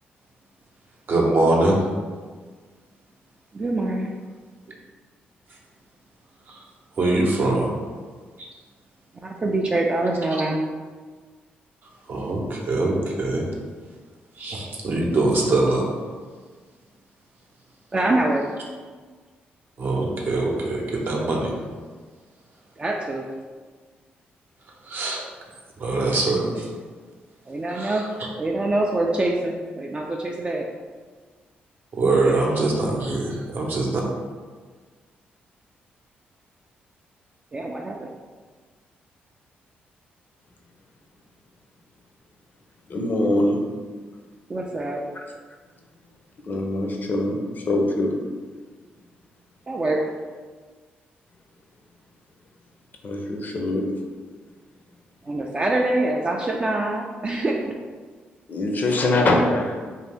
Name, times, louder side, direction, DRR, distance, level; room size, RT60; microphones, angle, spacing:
voice 1, 1.1-1.9 6.5-6.6 7.0-7.8 8.4-8.5 10.3-10.4 12.1-13.5 14.4-16.1 19.8-21.5 24.8-25.2 25.8-26.7 27.7-28.1 31.9-33.9, right 2 dB, 55° right, -1 dB, 0.7 m, -23 dB
voice 2, 3.5-4.1 9.2-10.6 17.9-18.4 22.8-23.2 27.5-28.0 28.4-30.7 32.2-32.4 37.5-38.1 44.5-45.1 49.7-50.0 55.2-57.7, right 2 dB, 25° right, -1 dB, 0.3 m, -25 dB
voice 3, 42.9-43.6 46.4-48.1 53.0-53.8 58.5-59.8, left 2 dB, 50° left, 1 dB, 0.5 m, -23 dB
2.7 x 2.5 x 3.4 m, 1.5 s
cardioid pair, 70°, 4 cm